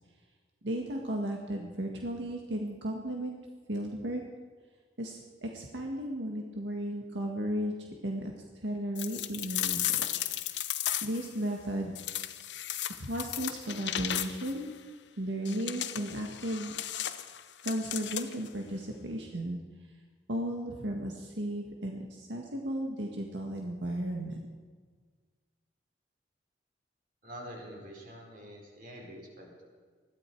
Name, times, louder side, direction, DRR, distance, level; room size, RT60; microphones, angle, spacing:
voice 1, 0.6-3.4 3.7-4.2 5.0-10.3 11.0-12.0 12.9-14.7 15.2-16.7 17.6-19.6 20.3-24.4, right 1 dB, 90° right, 1 dB, 1.7 m, -35 dB
sound 1, 9.0-11.3 12.0-14.6 15.5-18.5, left 12 dB, 80° left, 0.9 m, -35 dB
voice 2, 27.2-29.7, equal, 50° right, -1 dB, 4.5 m, -46 dB
20.5 x 14.0 x 4.6 m, 1.5 s
head